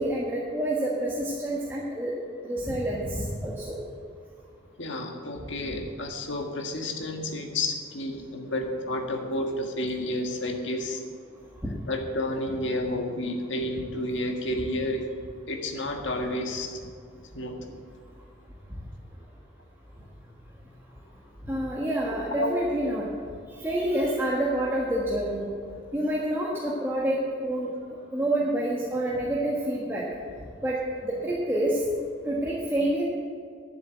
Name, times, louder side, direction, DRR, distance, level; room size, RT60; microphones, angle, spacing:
voice 1, 0.0-2.1 2.4-3.8 11.6-11.7 21.4-23.1 23.5-25.5 25.9-30.0 30.6-31.8 32.2-33.0, right 1 dB, 10° right, -5 dB, 1.4 m, -28 dB
voice 2, 4.8-11.0 11.9-15.1 15.5-16.8 17.3-17.6 22.4-22.5, left 1 dB, 65° left, 3 dB, 1.6 m, -30 dB
12.0 x 7.1 x 8.2 m, 2.3 s
head